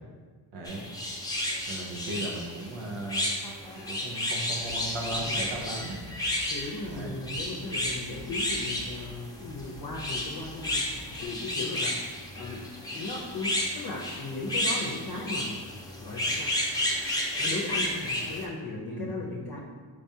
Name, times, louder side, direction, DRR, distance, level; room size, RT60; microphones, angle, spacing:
voice 1, 0.5-0.8 1.7-3.4 3.9-6.0 6.9-7.2 18.9-19.1, right 1 dB, 90° right, -1 dB, 0.8 m, -36 dB
sound 1, 0.6-18.4, left 1 dB, 10° left, 0.7 m, -32 dB
sound 2, 4.6-11.2, equal, 45° right, 0.9 m, -48 dB
voice 2, 6.5-12.1 12.3-12.6 12.9-15.6 16.0-16.5 17.4-19.6, left 2 dB, 50° left, -3 dB, 0.7 m, -37 dB
5.0 x 3.4 x 2.7 m, 1.5 s
cardioid pair, 75°, 49 cm